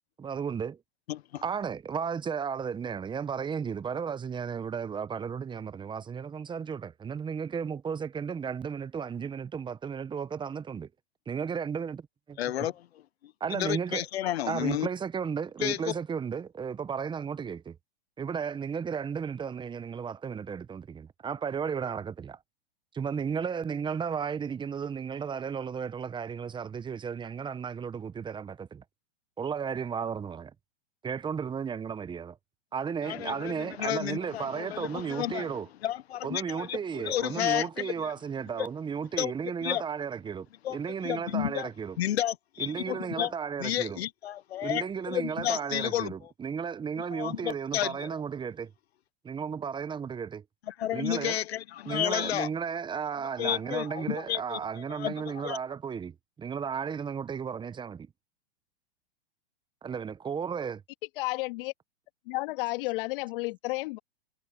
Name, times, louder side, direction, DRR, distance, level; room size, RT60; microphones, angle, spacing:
voice 1, 0.2-0.8 1.4-10.9 11.3-12.4 13.4-14.1 14.5-17.8 18.2-22.4 22.9-28.8 29.4-30.5 31.0-32.4 32.7-35.7 36.2-42.0 42.6-44.0 44.6-48.7 49.2-50.4 50.9-51.4 51.9-58.1 59.8-60.8, right 6 dB, 15° right, 1.0 m, -34 dB
voice 2, 1.1-1.4 12.4-12.9 13.5-14.9 15.6-15.9 33.0-35.6 35.8-38.1 38.6-38.7 39.2-39.3 39.6-39.8 40.6-40.8 41.0-41.7 42.0-43.3 43.6-46.3 47.0-48.1 50.7-52.5 53.4-55.6, left 12 dB, 75° left, 1.2 m, -32 dB
voice 3, 61.2-61.7 62.3-64.0, left 23 dB, 55° left, 2.8 m, -32 dB
hypercardioid pair, 115°, 32 cm